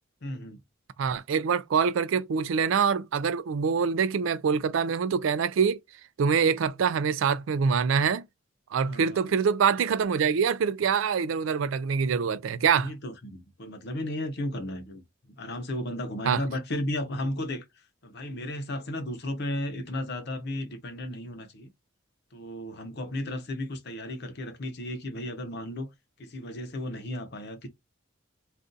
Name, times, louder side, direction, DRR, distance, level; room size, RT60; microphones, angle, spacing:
voice 1, 0.2-0.6 8.8-9.4 12.8-15.0 15.4-17.6 18.0-21.7 22.3-25.9 26.2-27.7, left 1 dB, 55° left, 0.7 m, -34 dB
voice 2, 1.0-5.8 6.2-8.2 8.7-12.9 16.3-16.4, right 6 dB, 75° right, 0.4 m, -25 dB
2.6 x 2.4 x 3.8 m
head